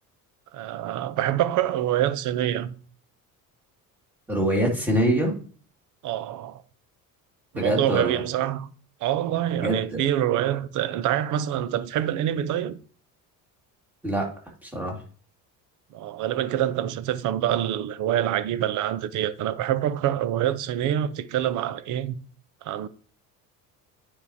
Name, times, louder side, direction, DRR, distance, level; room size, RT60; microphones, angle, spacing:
voice 1, 0.5-2.7 6.0-6.6 7.5-8.7 9.0-12.8 15.9-22.1 22.6-22.9, right 11 dB, 60° right, 0.7 m, -26 dB
voice 2, 4.3-5.3 7.5-8.2 9.6-10.0 14.0-14.3 14.6-15.0, right 1 dB, 5° right, 2.3 m, -24 dB
9.3 x 4.8 x 2.8 m
cardioid pair, 135°, 34 cm